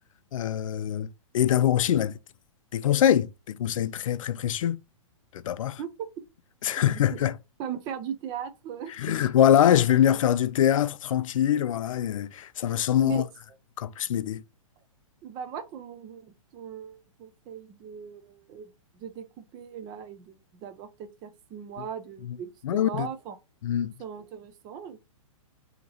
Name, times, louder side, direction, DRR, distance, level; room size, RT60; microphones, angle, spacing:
voice 1, 0.3-2.2 2.7-4.8 5.3-5.8 6.6-7.4 9.0-13.3 13.8-14.4 21.8-21.9 22.2-22.4 22.6-23.1 23.6-23.9, left 10 dB, 65° left, 0.5 m, -24 dB
voice 2, 7.6-8.9 9.2-9.3 13.0-13.2 15.2-23.4 24.0-25.0, right 8 dB, 25° right, 0.5 m, -39 dB
5.1 x 2.9 x 2.8 m
hypercardioid pair, 145°, 18 cm